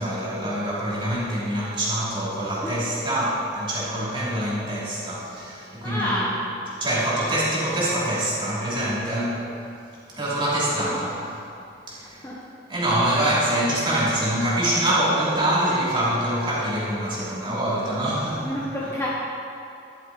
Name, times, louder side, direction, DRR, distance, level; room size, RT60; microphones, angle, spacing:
voice 1, 0.0-6.3 6.8-9.5 10.1-11.2 11.9-12.2 12.7-18.5, right 1 dB, 25° right, -7 dB, 2.8 m, -25 dB
voice 2, 5.8-6.5 10.7-11.2 12.0-12.4 18.4-19.1, equal, 15° left, -5 dB, 1.1 m, -30 dB
12.0 x 12.0 x 4.1 m, 2.6 s
head